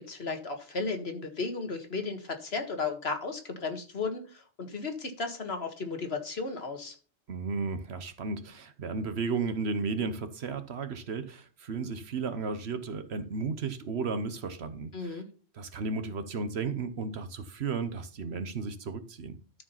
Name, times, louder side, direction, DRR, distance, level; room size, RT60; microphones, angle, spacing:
voice 1, 0.1-6.9 14.9-15.3, left 4 dB, 60° left, 1.8 m, -34 dB
voice 2, 7.3-15.2 15.5-19.4, right 4 dB, 65° right, 1.2 m, -34 dB
12.5 x 4.9 x 5.7 m
omnidirectional pair, 1.2 m